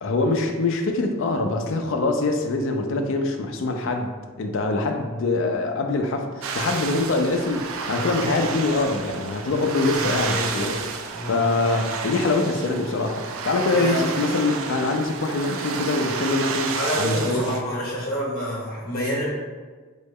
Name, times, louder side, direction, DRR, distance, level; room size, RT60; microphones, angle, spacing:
voice 1, 0.0-4.1 4.4-10.8 11.3-17.4, left 3 dB, 60° left, 4 dB, 0.4 m, -24 dB
sound 1, 6.4-17.6, right 5 dB, 70° right, 0.3 m, -31 dB
voice 2, 10.0-10.6 11.1-11.5 13.7-14.0 16.7-19.3, equal, 45° left, -6 dB, 1.0 m, -27 dB
3.7 x 2.1 x 3.6 m, 1.4 s
head